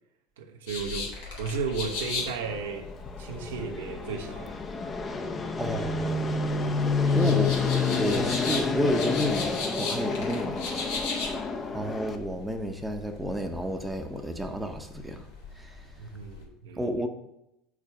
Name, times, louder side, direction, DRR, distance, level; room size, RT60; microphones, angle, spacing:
voice 1, 0.4-1.1 1.4-2.9 3.2-4.6 7.2-7.3 16.0-16.9, right 5 dB, 85° right, 0.7 m, -34 dB
sound 1, 0.7-16.4, left 4 dB, 80° left, 1.6 m, -38 dB
Fixed-wing aircraft airplane, 1.9-12.2, left 4 dB, 25° left, 0.6 m, -29 dB
voice 2, 5.6-6.3 7.1-7.6 8.0-10.9 11.7-15.3 15.6-15.8 16.8-17.1, equal, 5° right, 0.8 m, -31 dB
4.8 x 4.4 x 5.8 m
hypercardioid pair, 85°, 0 cm